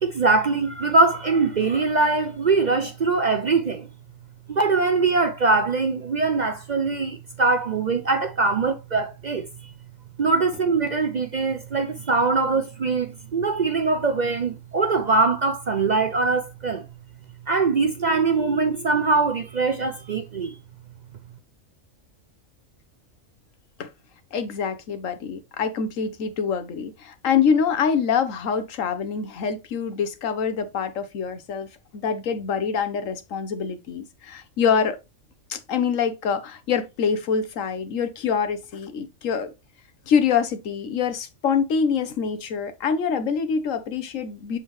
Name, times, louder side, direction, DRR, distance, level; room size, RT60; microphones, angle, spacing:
voice 1, 0.0-3.9 4.5-9.5 10.2-16.9 17.5-20.5, right 3 dB, 55° right, 0.5 m, -22 dB
voice 2, 24.3-35.0 35.5-39.5 40.1-44.6, left 6 dB, 70° left, 1.2 m, -25 dB
7.2 x 4.2 x 3.1 m
omnidirectional pair, 1.4 m